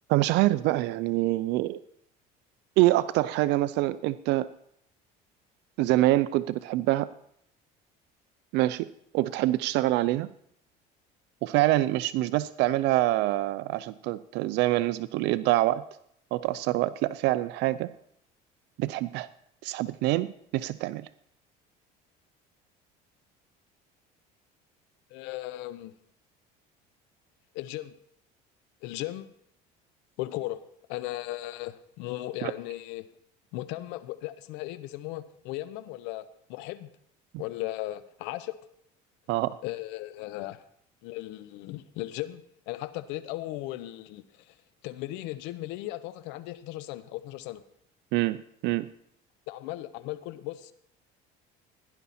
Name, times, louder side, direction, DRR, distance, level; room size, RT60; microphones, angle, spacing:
voice 1, 0.1-1.8 2.8-4.5 5.8-7.1 8.5-10.3 11.4-15.8 16.3-17.9 18.8-19.3 19.6-21.1 32.4-32.5 39.3-39.6 48.1-48.4 48.6-48.9, right 16 dB, 70° right, 15 dB, 0.5 m, -25 dB
voice 2, 25.1-25.9 27.5-27.9 28.8-29.3 30.2-30.6 30.9-33.0 33.5-36.9 37.4-38.5 39.6-40.6 41.0-44.5 44.8-47.6 49.5-50.7, left 16 dB, 80° left, 14 dB, 1.0 m, -37 dB
17.0 x 11.0 x 4.3 m, 0.71 s
cardioid pair, 115°, 18 cm